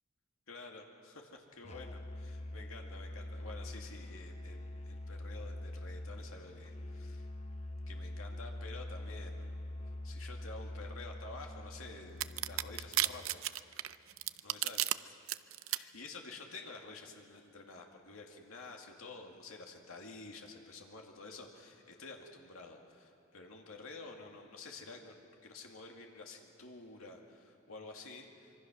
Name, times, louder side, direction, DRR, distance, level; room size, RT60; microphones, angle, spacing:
voice 1, 0.5-7.3 7.9-9.6 10.0-14.0 14.4-15.1 15.7-28.6, left 3 dB, 80° left, 1 dB, 2.3 m, -50 dB
Musical instrument, 1.6-13.4, left 1 dB, 30° left, 0.9 m, -44 dB
sound 1, 12.2-14.9 15.3-15.8, right 14 dB, 70° right, 0.5 m, -32 dB
25.5 x 24.0 x 6.2 m, 2.9 s
head